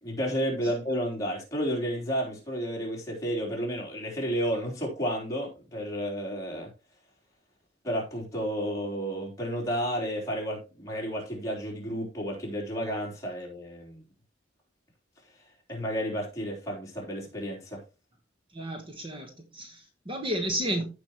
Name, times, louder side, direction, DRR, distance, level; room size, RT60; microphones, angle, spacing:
voice 1, 0.0-6.7 7.8-14.0 15.7-17.8, equal, 15° left, 3.6 m, -31 dB
voice 2, 18.5-20.8, right 1 dB, 25° right, 1.3 m, -32 dB
15.5 x 5.2 x 3.0 m
head